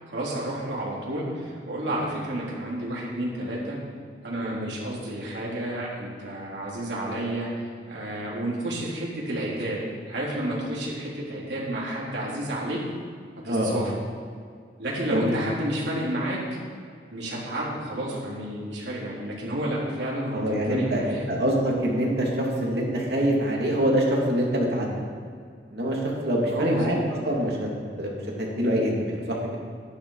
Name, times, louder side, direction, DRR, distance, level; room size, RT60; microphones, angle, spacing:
voice 1, 0.1-3.8 4.2-9.8 10.1-12.8 13.4-13.9 14.8-16.6 17.1-21.3 26.5-27.1, right 1 dB, 80° right, -5 dB, 3.6 m, -31 dB
voice 2, 13.5-13.9 15.1-15.4 20.3-25.0 25.7-27.0 27.2-27.6 28.0-29.6, equal, 65° right, -2 dB, 2.8 m, -25 dB
11.5 x 11.0 x 4.9 m, 2.1 s
head